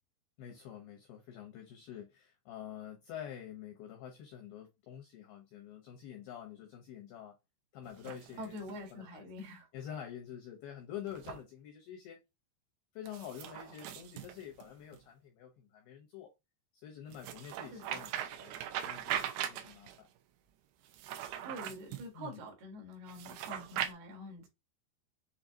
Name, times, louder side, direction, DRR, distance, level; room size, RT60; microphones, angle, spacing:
voice 1, 0.4-7.4 7.7-8.6 8.9-9.3 9.7-12.2 12.9-16.3 16.8-20.1 22.1-22.4, left 9 dB, 85° left, 2.1 m, -47 dB
sound 1, 7.8-8.8 11.1-11.4 13.0-15.0 17.1-20.0 20.8-22.1 23.1-23.9, right 11 dB, 90° right, 2.2 m, -40 dB
voice 2, 8.4-9.7 17.7-18.0 21.4-24.5, left 1 dB, 70° right, 2.9 m, -46 dB
7.3 x 2.4 x 2.6 m
omnidirectional pair, 5.4 m